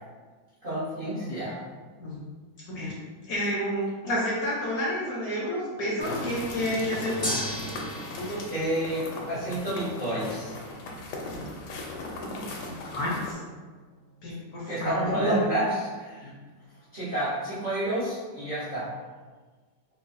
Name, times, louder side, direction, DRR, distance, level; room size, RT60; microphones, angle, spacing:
voice 1, 0.6-1.6 8.2-10.5 14.7-16.3 16.9-18.9, right 1 dB, 50° right, -11 dB, 0.6 m, -30 dB
voice 2, 3.3-7.5 8.1-8.4 12.1-13.4 14.2-15.4 16.2-16.3, equal, 65° left, -6 dB, 1.0 m, -30 dB
sound 1, 6.0-13.3, left 2 dB, 85° left, 1.4 m, -37 dB
Gong, 7.2-17.4, equal, 25° left, 0.6 m, -42 dB
4.6 x 2.3 x 2.5 m, 1.4 s
omnidirectional pair, 2.1 m